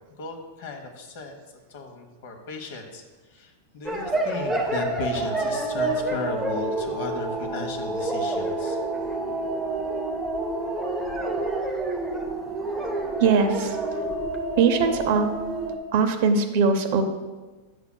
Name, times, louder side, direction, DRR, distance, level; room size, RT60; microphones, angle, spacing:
voice 1, 0.2-1.4 1.7-3.0 3.3-8.8, left 3 dB, 50° left, 4 dB, 1.1 m, -35 dB
sound 1, 3.8-15.8, right 2 dB, 5° right, 0.6 m, -28 dB
voice 2, 13.2-14.0 14.6-15.3 15.9-17.0, right 5 dB, 40° right, 6 dB, 0.6 m, -21 dB
10.5 x 7.2 x 2.2 m, 1.2 s
supercardioid pair, 175°, 0 cm